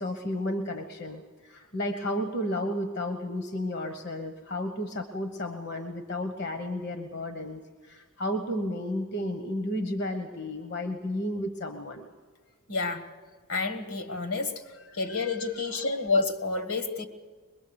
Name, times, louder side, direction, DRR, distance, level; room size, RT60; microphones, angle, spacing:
voice 1, 0.0-7.6 7.9-12.1 15.7-15.8, left 1 dB, 50° left, 6 dB, 1.2 m, -32 dB
voice 2, 12.7-13.1 13.5-14.6 14.9-17.0, left 3 dB, 70° left, 9 dB, 1.9 m, -29 dB
22.5 x 22.5 x 7.0 m, 1.4 s
head